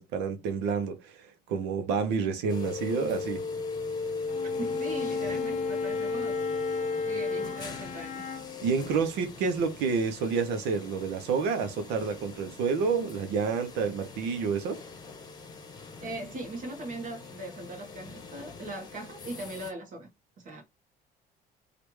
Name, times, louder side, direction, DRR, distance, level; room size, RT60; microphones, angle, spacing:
voice 1, 0.0-3.4 8.6-14.8, right 5 dB, 90° right, 0.8 m, -29 dB
sound 1, 2.5-19.7, left 4 dB, 25° left, 0.9 m, -37 dB
Bowed string instrument, 4.2-8.7, left 7 dB, 40° left, 0.5 m, -40 dB
voice 2, 4.6-6.7 7.0-8.2 16.0-20.1 20.4-20.6, right 2 dB, 50° right, 1.3 m, -40 dB
3.3 x 2.5 x 3.1 m
cardioid pair, 110°, 17 cm